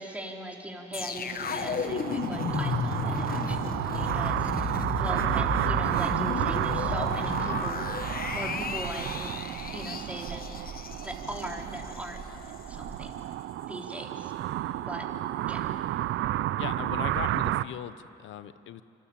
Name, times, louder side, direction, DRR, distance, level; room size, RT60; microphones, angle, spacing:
voice 1, 0.0-7.8 8.3-9.3 9.7-10.6 11.0-13.2 13.7-14.3 14.8-15.1 15.5-15.6, right 1 dB, 5° right, 0 dB, 3.9 m, -40 dB
sound 1, 0.9-12.1 12.4-12.6, left 6 dB, 50° left, 1.3 m, -33 dB
sound 2, 0.9-17.6, right 14 dB, 80° right, 0.6 m, -31 dB
sound 3, 6.5-13.1, right 4 dB, 60° right, 7.1 m, -45 dB
voice 2, 16.6-18.8, left 11 dB, 75° left, 14 dB, 1.0 m, -39 dB
26.5 x 24.5 x 8.9 m, 2.8 s
cardioid pair, 90°, 20 cm